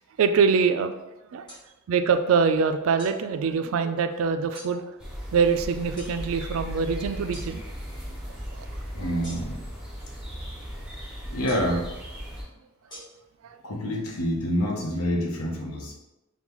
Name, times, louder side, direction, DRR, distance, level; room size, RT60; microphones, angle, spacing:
voice 1, 0.2-0.9 1.3-1.4 1.9-4.9 5.3-7.6 13.4-13.6, right 5 dB, 75° right, 8 dB, 0.3 m, -24 dB
sound 1, 1.5-1.6 3.0-3.2 4.5-4.7 6.0-6.1 7.3-7.5 9.2-9.7 11.5-11.8 12.9-13.0, equal, 20° left, 1.3 m, -43 dB
sound 2, 5.0-12.4, equal, 5° right, 0.8 m, -37 dB
voice 2, 8.9-9.6 11.3-11.9 13.6-15.9, equal, 90° left, 0 dB, 0.8 m, -27 dB
5.3 x 2.2 x 3.0 m, 0.99 s
head